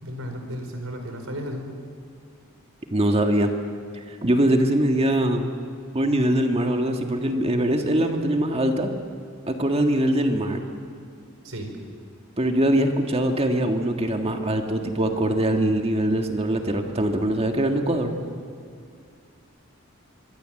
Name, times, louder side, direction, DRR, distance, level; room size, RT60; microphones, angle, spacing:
voice 1, 0.0-1.7 11.4-11.7, equal, 90° right, 4 dB, 4.8 m, -33 dB
voice 2, 2.9-3.5 4.1-5.5 5.9-8.9 9.5-10.6 12.4-18.1, right 1 dB, 30° right, 4 dB, 1.7 m, -22 dB
25.0 x 23.0 x 7.8 m, 2.3 s
head